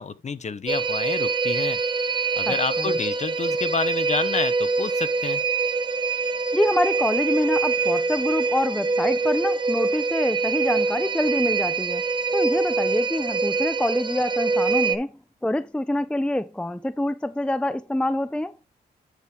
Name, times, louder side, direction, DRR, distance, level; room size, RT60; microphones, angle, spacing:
voice 1, 0.0-1.8 2.4-5.4, left 5 dB, 40° left, 1.0 m, -29 dB
sound 1, 0.7-15.0, right 4 dB, 25° right, 0.9 m, -24 dB
voice 2, 2.5-3.0 6.5-12.1 12.3-15.1 15.4-18.6, left 1 dB, 5° left, 0.4 m, -26 dB
10.5 x 4.8 x 3.6 m
cardioid pair, 70°, 18 cm